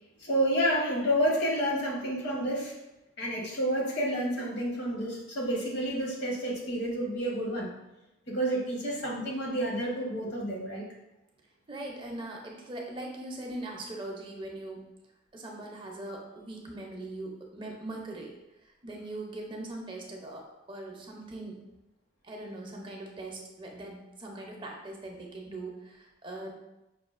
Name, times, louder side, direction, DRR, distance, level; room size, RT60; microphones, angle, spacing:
voice 1, 0.2-2.8 3.2-7.7 8.3-10.9, equal, 60° left, -3 dB, 1.0 m, -29 dB
voice 2, 11.7-14.9 15.3-18.3 18.6-21.6 22.2-26.5, right 2 dB, 25° right, 0 dB, 0.5 m, -41 dB
5.3 x 2.3 x 2.4 m, 0.94 s
head